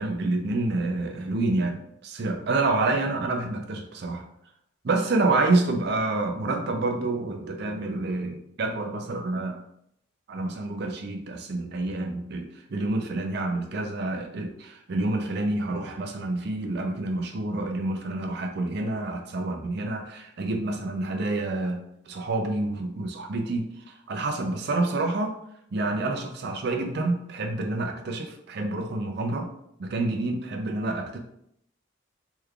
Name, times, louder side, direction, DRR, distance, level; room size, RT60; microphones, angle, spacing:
voice 1, 0.0-4.2 4.8-9.6 10.3-25.4 25.7-29.5 29.8-31.2, right 2 dB, 55° right, 4 dB, 0.4 m, -28 dB
3.4 x 3.2 x 2.3 m, 0.74 s
head